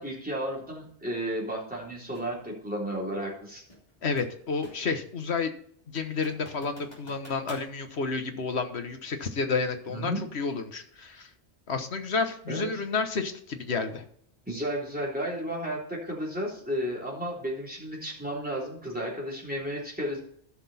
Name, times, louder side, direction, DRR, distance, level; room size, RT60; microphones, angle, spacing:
voice 1, 0.0-3.6 9.9-10.2 12.5-12.7 14.5-20.2, equal, 10° right, -4 dB, 3.5 m, -33 dB
sound 1, 2.1-2.4 3.7-5.0 5.4-5.5 6.0-7.7, equal, 35° left, 3.2 m, -49 dB
voice 2, 4.0-5.5 5.9-11.3 11.7-14.0, left 4 dB, 70° left, 7 dB, 1.5 m, -30 dB
14.5 x 6.0 x 4.2 m, 0.63 s
omnidirectional pair, 1.2 m